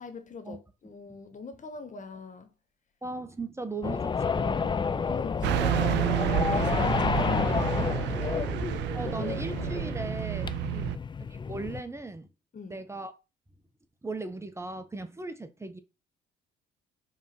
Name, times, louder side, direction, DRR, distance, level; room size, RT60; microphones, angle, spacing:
voice 1, 0.0-2.5 5.0-6.1 6.5-8.5 10.7-11.0 12.5-12.8, left 4 dB, 45° left, 1.3 m, -42 dB
voice 2, 3.0-5.1 8.9-10.5 11.5-12.3 12.7-13.1 14.0-15.8, right 3 dB, 15° right, 1.1 m, -37 dB
sound 1, 3.8-11.8, left 5 dB, 25° left, 0.4 m, -30 dB
Car passing by / Truck, 5.4-11.0, right 15 dB, 75° right, 0.4 m, -30 dB
5.1 x 3.7 x 5.7 m
supercardioid pair, 70°, 18 cm